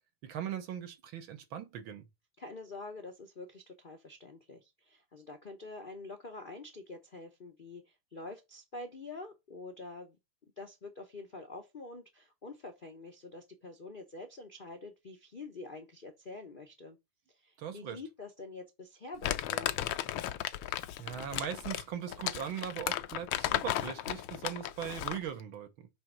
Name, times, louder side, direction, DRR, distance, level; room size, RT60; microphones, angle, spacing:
voice 1, 0.2-2.1 17.6-18.0 21.0-25.9, right 9 dB, 75° right, 1.9 m, -40 dB
voice 2, 2.4-10.2 10.6-17.0 17.3-19.8, left 3 dB, 50° left, 0.6 m, -46 dB
Crumpling crinkling, 19.2-25.3, left 13 dB, 80° left, 1.4 m, -35 dB
7.5 x 3.5 x 5.0 m
omnidirectional pair, 2.3 m